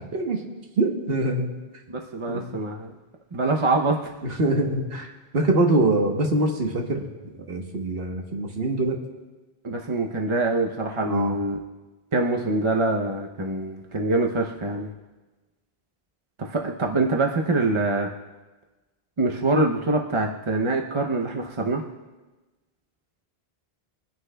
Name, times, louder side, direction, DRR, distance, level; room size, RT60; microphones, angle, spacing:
voice 1, 0.8-1.6 2.3-2.5 4.4-7.0 7.3-9.0 11.0-11.4, right 2 dB, 65° right, 2 dB, 1.4 m, -24 dB
voice 2, 1.9-2.9 3.3-4.1 9.6-11.6 12.1-14.9 16.4-18.1 19.2-21.8, right 2 dB, 35° right, 1 dB, 0.6 m, -24 dB
23.5 x 9.8 x 2.2 m, 1.2 s
omnidirectional pair, 1.1 m